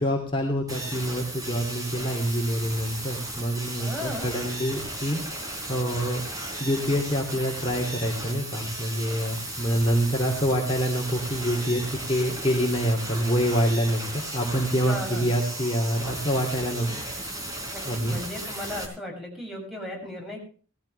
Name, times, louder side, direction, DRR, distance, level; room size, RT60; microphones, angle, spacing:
voice 1, 0.0-6.2 6.6-16.9 17.2-17.4 17.9-18.2, equal, 25° left, 0 dB, 2.7 m, -26 dB
sound 1, 0.7-18.9, right 1 dB, 20° right, 4.1 m, -35 dB
voice 2, 3.8-4.3 14.9-15.3 17.7-20.4, left 1 dB, ahead, 0 dB, 6.5 m, -35 dB
18.0 x 14.5 x 3.3 m, 0.40 s
head